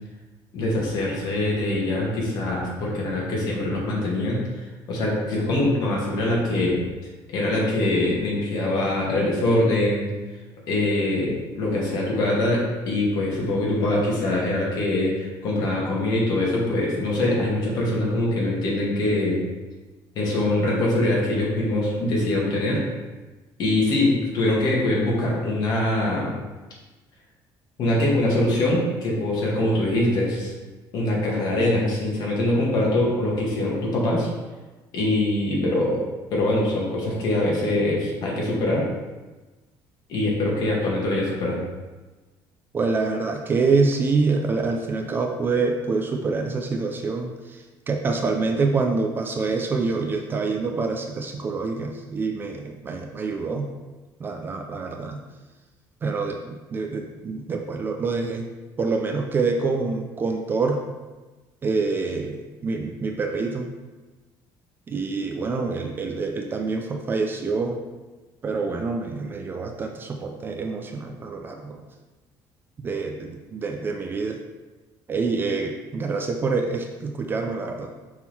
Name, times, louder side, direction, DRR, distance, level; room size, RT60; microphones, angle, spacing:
voice 1, 0.5-4.4 4.9-6.8 7.3-10.1 10.7-19.4 20.2-22.8 23.6-26.3 27.8-30.5 30.9-34.3 34.9-36.0 36.3-38.9 40.1-41.6, left 1 dB, 50° left, -4 dB, 1.8 m, -23 dB
voice 2, 42.7-53.7 54.2-55.2 56.0-58.5 58.8-60.8 61.6-63.7 64.9-67.8 68.4-71.8 72.8-74.4 75.1-77.9, right 4 dB, 25° right, 4 dB, 0.4 m, -26 dB
6.1 x 3.7 x 4.3 m, 1.2 s
cardioid pair, 175°, 9 cm